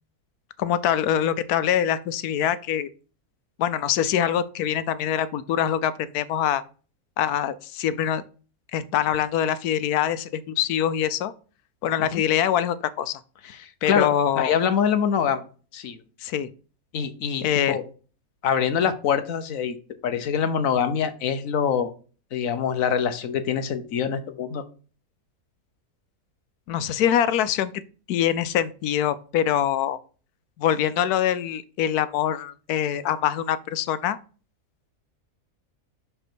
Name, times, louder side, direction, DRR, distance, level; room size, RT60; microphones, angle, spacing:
voice 1, 0.6-2.9 3.6-6.6 7.2-8.2 8.7-11.3 11.8-13.2 13.8-14.5 16.2-16.5 17.4-17.8 26.7-27.7 28.1-30.0 30.6-34.2, left 10 dB, 85° left, 1.1 m, -24 dB
voice 2, 13.4-14.1 14.3-15.4 15.7-16.0 16.9-17.8 18.4-19.8 20.0-21.9 22.3-24.6, left 7 dB, 65° left, 1.2 m, -24 dB
6.0 x 5.6 x 4.4 m
omnidirectional pair, 1.6 m